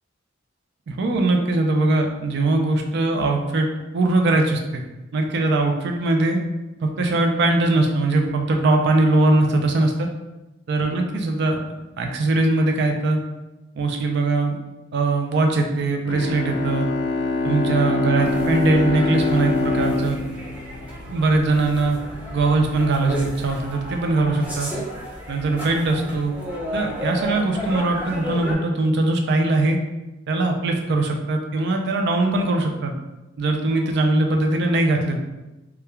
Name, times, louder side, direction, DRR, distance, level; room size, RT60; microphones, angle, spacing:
voice 1, 0.9-4.8 5.1-6.4 6.8-10.1 10.7-11.6 12.0-13.2 13.8-14.6 14.9-16.9 17.4-20.2 21.1-22.0 22.3-24.7 25.3-26.3 26.7-29.8 30.3-32.9 33.4-35.2, right 2 dB, 60° right, 3 dB, 0.4 m, -21 dB
Bowed string instrument, 16.0-21.6, left 3 dB, 55° left, 0.3 m, -25 dB
sound 1, 18.2-28.5, equal, 10° right, 0.7 m, -33 dB
3.0 x 2.3 x 2.2 m, 1.0 s
head